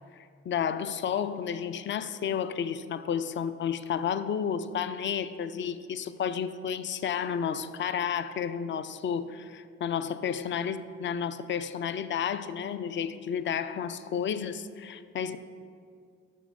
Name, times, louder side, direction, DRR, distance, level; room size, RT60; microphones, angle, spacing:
voice 1, 0.2-15.4, left 7 dB, 40° left, 0.4 m, -31 dB
6.2 x 3.6 x 5.9 m
hypercardioid pair, 50°, 31 cm